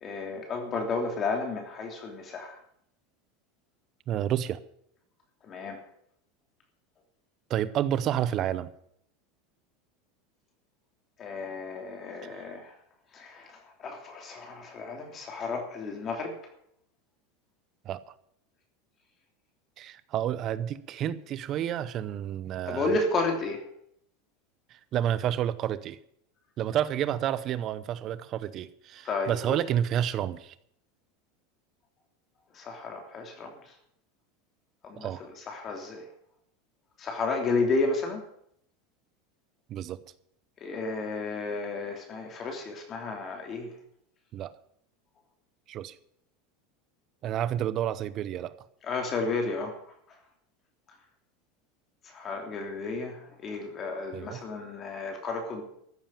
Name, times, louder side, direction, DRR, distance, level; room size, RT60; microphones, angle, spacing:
voice 1, 0.0-2.6 5.4-5.8 11.2-12.7 13.1-16.3 22.7-23.6 29.0-29.6 32.5-33.6 34.8-35.1 35.5-36.0 37.0-38.2 40.6-43.7 48.8-49.8 52.0-55.6, left 3 dB, 30° left, 3.1 m, -32 dB
voice 2, 4.1-4.6 7.5-8.7 12.2-12.5 17.8-18.1 19.8-22.9 24.7-26.0 26.6-30.5 35.0-35.2 39.7-40.0 44.3-44.5 45.7-46.0 47.2-48.6 54.1-54.4, right 10 dB, 40° right, 0.7 m, -30 dB
14.5 x 7.4 x 9.0 m
supercardioid pair, 135°, 0 cm